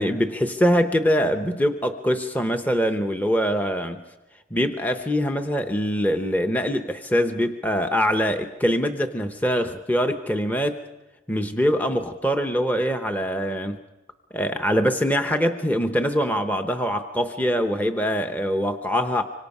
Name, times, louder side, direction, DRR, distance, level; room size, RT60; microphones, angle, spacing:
voice 1, 0.0-4.0 4.5-10.8 11.3-13.8 14.3-19.2, equal, 10° left, 6 dB, 0.7 m, -23 dB
25.5 x 25.5 x 5.4 m, 1.1 s
head